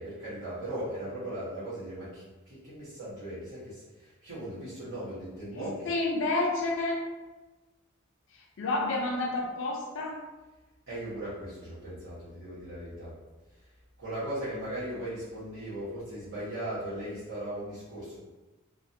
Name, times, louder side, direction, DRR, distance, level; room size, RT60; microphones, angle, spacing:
voice 1, 0.0-5.9 10.9-13.1 14.0-18.2, right 1 dB, 75° right, -13 dB, 1.1 m, -38 dB
voice 2, 5.6-7.0 8.6-10.2, left 2 dB, 65° left, -1 dB, 0.5 m, -29 dB
2.4 x 2.2 x 2.6 m, 1.1 s
head